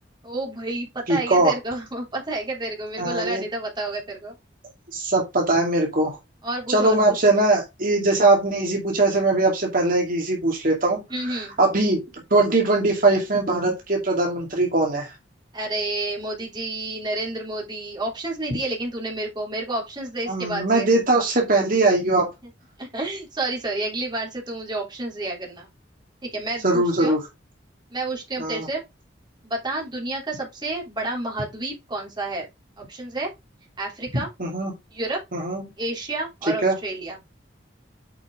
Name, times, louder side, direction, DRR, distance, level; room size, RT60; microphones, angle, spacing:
voice 1, 0.2-4.3 6.4-7.2 11.1-11.5 15.5-20.9 22.8-25.7 26.2-27.2 27.9-28.8 29.4-32.5 32.8-33.3 33.8-34.3 34.9-35.2 35.8-37.2, right 2 dB, 25° right, 3.3 m, -30 dB
voice 2, 1.1-1.5 3.0-3.4 4.9-6.2 6.7-12.0 12.3-15.1 20.3-22.3 26.6-27.2 28.4-28.7 34.4-34.7 35.3-35.6 36.6-36.7, right 2 dB, 50° right, 2.3 m, -21 dB
8.3 x 5.7 x 3.7 m
head